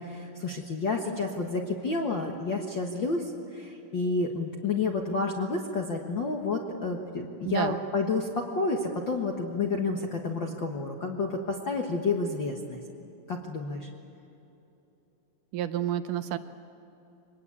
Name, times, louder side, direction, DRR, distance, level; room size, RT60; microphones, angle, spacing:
voice 1, 0.0-12.8 13.3-13.9, left 3 dB, 75° left, 1 dB, 1.0 m, -30 dB
voice 2, 7.5-7.8 15.5-16.4, right 11 dB, 80° right, 10 dB, 1.9 m, -29 dB
25.0 x 20.0 x 8.5 m, 2.9 s
omnidirectional pair, 4.5 m